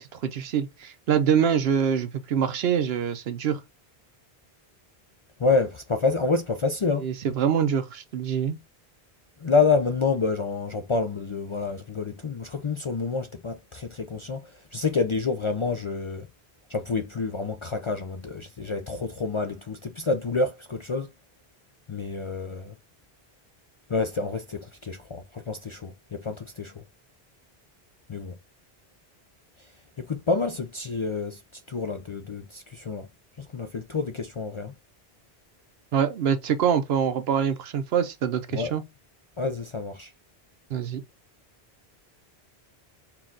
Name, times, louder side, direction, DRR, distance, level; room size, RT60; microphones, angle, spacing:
voice 1, 0.0-3.6 7.0-8.6 35.9-38.8 40.7-41.0, right 8 dB, 75° right, 0.9 m, -25 dB
voice 2, 5.4-7.0 9.4-14.4 14.7-16.3 16.7-21.1 21.9-22.7 23.9-26.8 28.1-28.3 30.0-31.4 31.7-33.1 33.5-34.7 38.5-38.7 39.4-40.1, left 4 dB, 50° left, 0.3 m, -28 dB
4.5 x 2.4 x 3.8 m
omnidirectional pair, 1.1 m